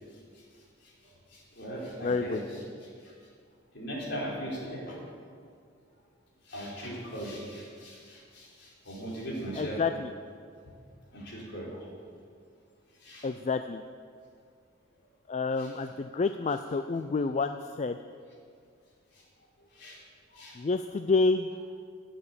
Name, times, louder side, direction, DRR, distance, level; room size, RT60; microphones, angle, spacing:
voice 1, 1.3-2.6 3.7-5.0 6.5-9.8 11.1-11.8 13.0-13.3 15.6-15.7 19.8-20.0 20.3-20.5, right 1 dB, 60° left, -5 dB, 4.4 m, -39 dB
voice 2, 2.0-2.4 9.6-10.1 13.2-13.8 15.3-18.0 20.6-21.5, left 4 dB, 35° left, 9 dB, 0.4 m, -28 dB
11.5 x 9.1 x 8.4 m, 2.2 s
head